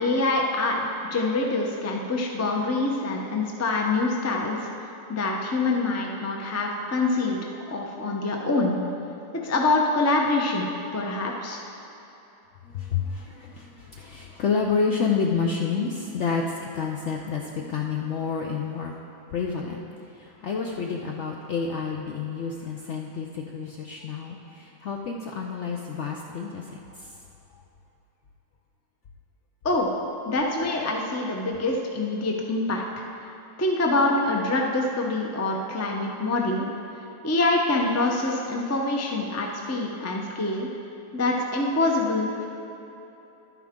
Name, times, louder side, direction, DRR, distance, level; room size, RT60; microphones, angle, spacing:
voice 1, 0.0-7.4 7.7-8.8 9.4-10.7 10.9-11.6 29.6-29.9 30.2-32.8 33.6-36.7 37.2-40.7 41.1-42.5, left 2 dB, 20° left, 0 dB, 0.4 m, -25 dB
voice 2, 12.6-18.9 19.3-27.2 27.5-27.6, left 5 dB, 65° left, 0 dB, 0.7 m, -29 dB
11.5 x 9.5 x 3.7 m, 2.9 s
omnidirectional pair, 1.8 m